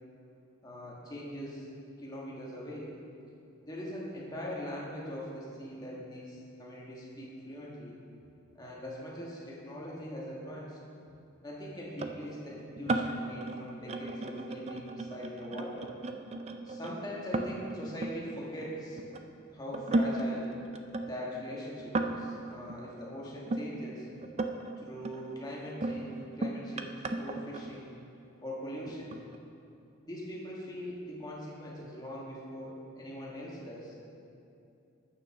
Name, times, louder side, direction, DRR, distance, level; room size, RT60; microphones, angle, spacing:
voice 1, 0.6-1.7 2.0-3.0 3.6-8.0 8.5-10.8 11.4-15.9 16.6-19.0 19.5-20.5 21.0-24.1 24.8-27.9 28.4-29.2 30.0-34.0, equal, 20° left, -5 dB, 1.3 m, -41 dB
sound 1, 12.0-19.2 19.7-23.7 24.2-24.7 25.0-28.2 28.9-29.4, right 2 dB, 30° right, 0.3 m, -35 dB
6.7 x 6.4 x 6.2 m, 2.6 s
head